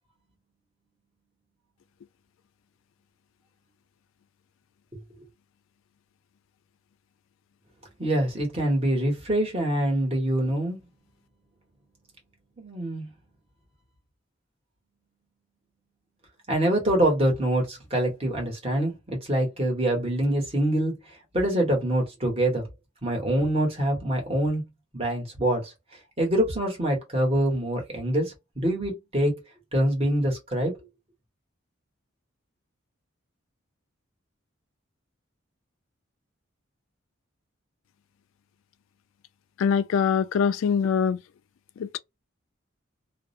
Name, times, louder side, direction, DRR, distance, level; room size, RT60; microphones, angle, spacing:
voice 1, 8.0-10.8 12.6-13.1 16.5-21.0 21.3-22.6 23.0-24.6 24.9-25.7 26.2-29.4 29.7-30.7, right 1 dB, 30° right, 1.1 m, -25 dB
voice 2, 39.6-41.2 41.8-42.0, left 7 dB, 80° left, 0.3 m, -23 dB
2.5 x 2.0 x 2.6 m
head